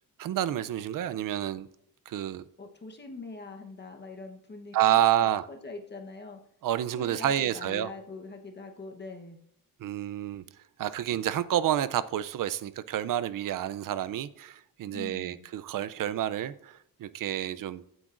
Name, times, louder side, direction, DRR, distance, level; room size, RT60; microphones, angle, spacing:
voice 1, 0.2-1.7 2.1-2.4 4.7-5.4 6.6-7.9 9.8-10.4 10.8-17.8, right 11 dB, 65° right, 0.5 m, -29 dB
voice 2, 2.6-6.4 7.0-9.4 14.9-15.4, left 3 dB, 30° left, 1.0 m, -43 dB
15.5 x 7.9 x 2.5 m
wide cardioid pair, 155°, 36 cm